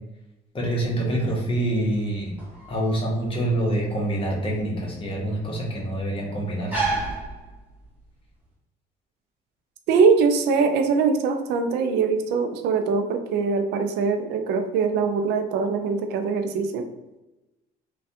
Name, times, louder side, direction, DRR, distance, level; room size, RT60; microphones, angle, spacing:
voice 1, 0.5-2.3 2.7-6.8, right 1 dB, 30° left, -3 dB, 1.0 m, -26 dB
sound 1, 1.1-8.1, right 3 dB, 10° right, 0.9 m, -34 dB
voice 2, 9.9-16.9, right 5 dB, 85° right, 6 dB, 0.4 m, -22 dB
3.2 x 2.3 x 2.7 m, 0.99 s
cardioid pair, 110°, 17 cm